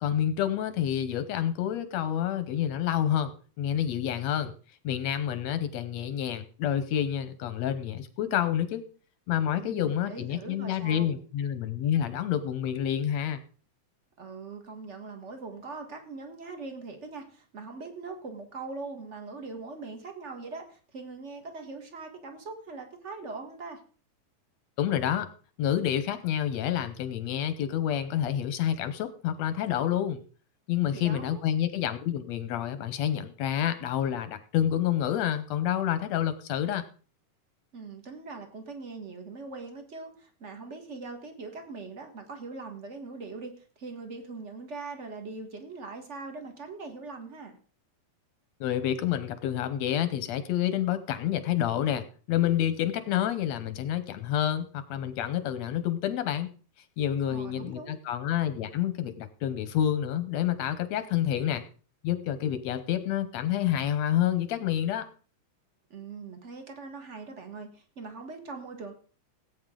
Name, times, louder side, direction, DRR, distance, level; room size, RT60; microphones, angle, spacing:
voice 1, 0.0-3.3 3.6-4.5 4.8-8.9 9.3-13.4 24.8-25.3 25.6-30.2 30.7-36.9 48.6-56.5 57.0-61.6 62.0-65.1, left 10 dB, 70° left, 12 dB, 1.7 m, -28 dB
voice 2, 9.6-11.1 14.2-23.8 30.9-31.4 37.7-47.6 57.3-57.9 65.9-68.9, right 3 dB, 45° right, 5 dB, 0.9 m, -41 dB
18.0 x 8.7 x 3.8 m, 0.40 s
omnidirectional pair, 3.8 m